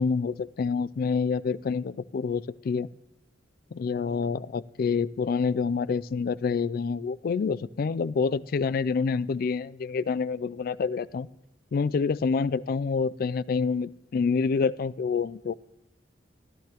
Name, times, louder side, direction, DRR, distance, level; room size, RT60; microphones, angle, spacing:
voice 1, 0.0-2.9 3.7-11.3 11.7-15.5, left 5 dB, 50° left, 17 dB, 0.3 m, -27 dB
16.0 x 11.0 x 2.9 m, 0.95 s
head